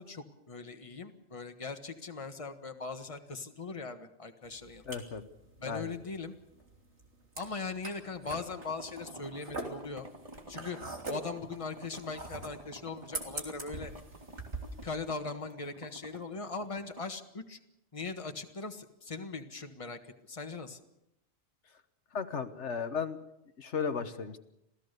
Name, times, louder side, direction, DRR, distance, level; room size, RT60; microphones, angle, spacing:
voice 1, 0.0-4.8 5.6-6.3 7.4-10.1 10.5-10.8 11.1-13.9 14.8-17.6 17.9-20.8, left 4 dB, 30° left, 6 dB, 1.5 m, -40 dB
sound 1, 4.4-14.8, right 2 dB, 80° right, 3.5 m, -44 dB
voice 2, 4.9-5.2 5.6-5.9 22.1-23.2 23.6-24.4, left 6 dB, 85° left, 8 dB, 1.6 m, -35 dB
sound 2, 8.6-17.1, right 1 dB, 30° right, 1.9 m, -50 dB
27.0 x 16.5 x 6.8 m, 0.84 s
omnidirectional pair, 1.2 m